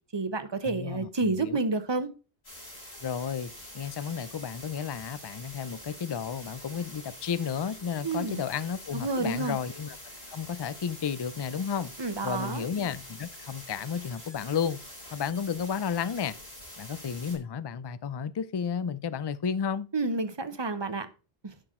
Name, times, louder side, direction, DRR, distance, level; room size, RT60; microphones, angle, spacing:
voice 1, 0.1-2.1 8.0-8.4 8.9-9.6 12.0-12.7 19.9-21.1, right 3 dB, 25° right, 0.9 m, -29 dB
voice 2, 0.6-1.6 3.0-10.0 10.3-11.9 12.2-14.8 15.1-16.4 16.8-19.9, left 7 dB, 40° left, 0.4 m, -32 dB
sound 1, 2.4-17.4, left 1 dB, 80° left, 6.2 m, -46 dB
11.5 x 6.0 x 3.7 m
omnidirectional pair, 1.0 m